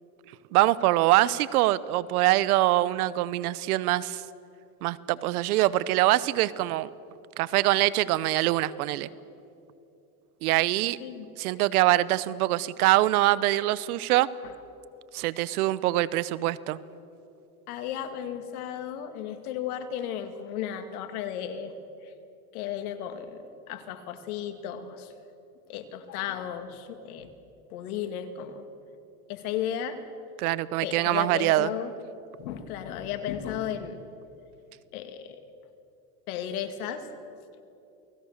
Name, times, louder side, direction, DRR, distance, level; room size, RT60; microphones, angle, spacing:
voice 1, 0.5-4.2 4.8-6.9 7.4-9.1 10.4-11.0 11.4-14.3 15.1-16.8 30.4-31.7, right 16 dB, 85° right, 19 dB, 0.9 m, -24 dB
voice 2, 17.7-21.7 22.0-22.1 22.5-25.1 25.7-27.3 27.7-28.7 29.3-30.0 30.8-31.9 32.4-34.0 34.9-35.4 36.3-37.6, left 9 dB, 85° left, 8 dB, 2.3 m, -34 dB
29.0 x 19.5 x 6.6 m, 2.8 s
supercardioid pair, 110°, 43 cm